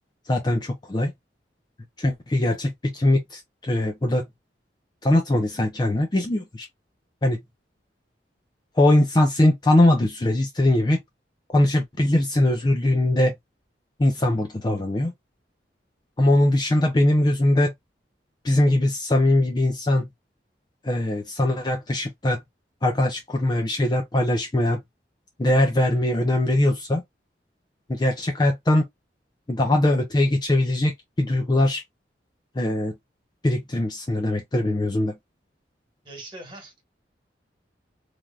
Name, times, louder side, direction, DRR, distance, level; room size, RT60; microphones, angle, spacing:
voice 1, 0.3-1.1 2.0-4.3 5.0-6.7 7.2-7.4 8.8-11.0 11.5-13.3 14.0-15.1 16.2-17.7 18.4-20.1 20.8-22.4 22.8-24.8 25.4-27.0 27.9-28.8 29.5-30.9 31.2-31.8 32.6-32.9 33.4-35.2, left 1 dB, 25° left, 0.4 m, -21 dB
voice 2, 36.0-36.8, right 2 dB, 25° right, 1.4 m, -41 dB
3.2 x 2.6 x 2.3 m
head